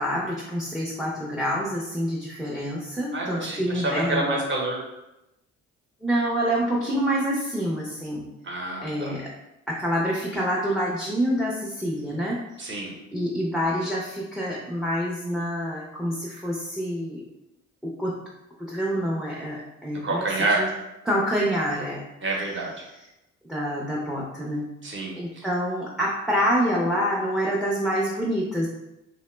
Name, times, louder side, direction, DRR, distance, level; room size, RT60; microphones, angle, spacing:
voice 1, 0.0-4.4 6.0-8.3 8.8-9.3 9.7-12.8 13.1-17.2 17.8-18.1 18.6-20.2 20.6-20.7 21.1-22.0 23.5-24.7 25.2-28.7, equal, ahead, -4 dB, 0.4 m, -27 dB
voice 2, 3.1-4.8 8.4-9.1 12.6-12.9 20.0-20.6 22.2-22.7 24.8-25.5, right 2 dB, 40° right, -1 dB, 0.9 m, -27 dB
2.9 x 2.0 x 3.1 m, 0.92 s
cardioid pair, 90°, 30 cm